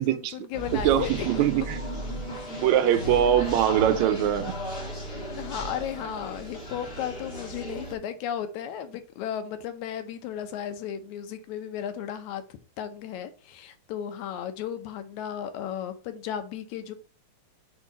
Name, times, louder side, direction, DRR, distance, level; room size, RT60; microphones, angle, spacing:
voice 1, 0.0-1.7 2.9-3.3 5.4-16.9, left 9 dB, 75° left, 2.1 m, -35 dB
sound 1, 0.5-7.9, equal, 35° left, 1.0 m, -35 dB
voice 2, 0.8-1.8 2.6-4.5, right 11 dB, 80° right, 1.9 m, -22 dB
4.6 x 4.5 x 5.0 m
omnidirectional pair, 3.5 m